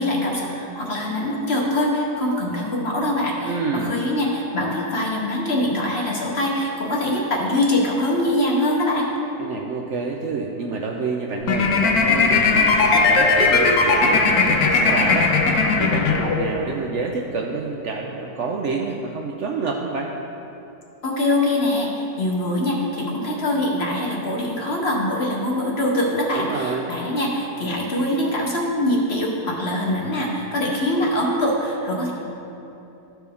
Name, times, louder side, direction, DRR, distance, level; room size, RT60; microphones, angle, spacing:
voice 1, 0.0-9.1 21.0-32.1, left 1 dB, 45° left, -2 dB, 1.0 m, -23 dB
voice 2, 3.4-4.0 9.4-20.1 26.4-26.9, right 4 dB, 70° right, 1 dB, 0.7 m, -28 dB
sound 1, 11.4-16.7, left 4 dB, 70° left, 1.2 m, -18 dB
13.0 x 4.5 x 3.4 m, 3.0 s
omnidirectional pair, 1.7 m